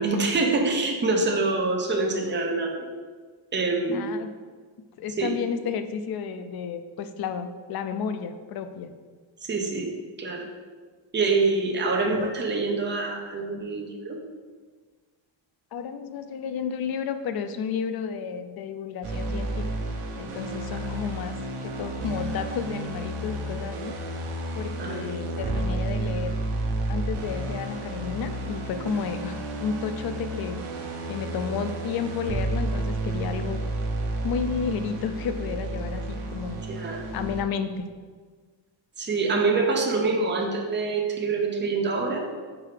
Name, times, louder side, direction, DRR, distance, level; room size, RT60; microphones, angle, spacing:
voice 1, 0.0-2.9 3.5-4.1 5.2-5.3 9.4-9.9 10.2-10.5 11.1-14.2 20.7-20.8 24.8-25.1 36.7-37.0 39.0-42.2, right 3 dB, 20° right, 1 dB, 0.7 m, -25 dB
voice 2, 3.9-4.3 5.0-8.9 15.7-21.3 21.6-23.9 24.6-26.4 26.9-30.6 31.1-33.6 34.2-36.6 37.1-37.9, left 6 dB, 50° left, 9 dB, 0.4 m, -32 dB
sound 1, 19.0-37.4, right 1 dB, 80° right, 1.1 m, -31 dB
4.8 x 4.7 x 4.9 m, 1.5 s
wide cardioid pair, 160°, 50 cm